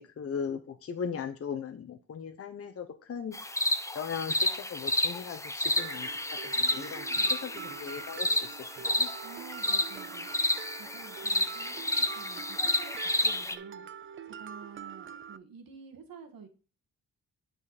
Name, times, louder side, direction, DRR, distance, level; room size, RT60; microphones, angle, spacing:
voice 1, 0.0-3.4 3.9-6.1 6.7-7.0 7.3-9.1, left 7 dB, 40° left, 6 dB, 0.8 m, -38 dB
sound 1, 3.3-13.6, left 1 dB, 10° left, 0.6 m, -31 dB
Mallet percussion, 5.8-15.4, right 8 dB, 35° right, 0.4 m, -44 dB
voice 2, 6.5-7.3 9.2-10.3 10.8-13.9 14.3-16.5, right 6 dB, 70° right, 5 dB, 1.7 m, -50 dB
8.7 x 5.1 x 4.2 m, 0.36 s
cardioid pair, 120°, 36 cm